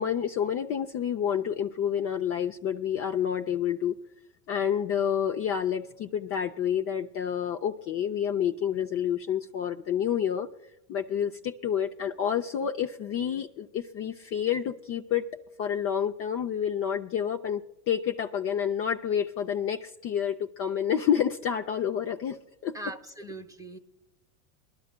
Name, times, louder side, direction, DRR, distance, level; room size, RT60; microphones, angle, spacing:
voice 1, 0.0-4.0 4.5-10.5 10.9-15.3 15.6-22.4 22.6-22.8, left 8 dB, 30° left, 0.5 m, -29 dB
voice 2, 22.7-23.8, right 2 dB, 5° right, 0.8 m, -40 dB
23.0 x 11.5 x 2.2 m
hypercardioid pair, 110°, 47 cm